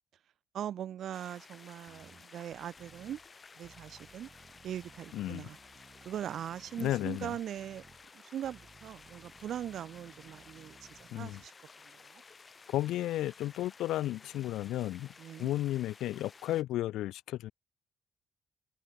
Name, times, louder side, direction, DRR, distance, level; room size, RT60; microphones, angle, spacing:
voice 1, 0.5-3.2 3.6-4.3 4.6-5.6 6.0-7.8 8.1-11.5 11.9-12.2 15.2-15.5, right 10 dB, 70° right, 2.4 m, -41 dB
sound 1, 1.1-16.6, left 4 dB, 35° left, 1.8 m, -55 dB
sound 2, 1.9-11.5, right 5 dB, 35° right, 3.3 m, -60 dB
voice 2, 5.1-5.5 6.8-7.3 11.1-11.4 12.7-15.1 15.4-17.5, left 14 dB, 85° left, 0.4 m, -33 dB
cardioid pair, 90°, 0 cm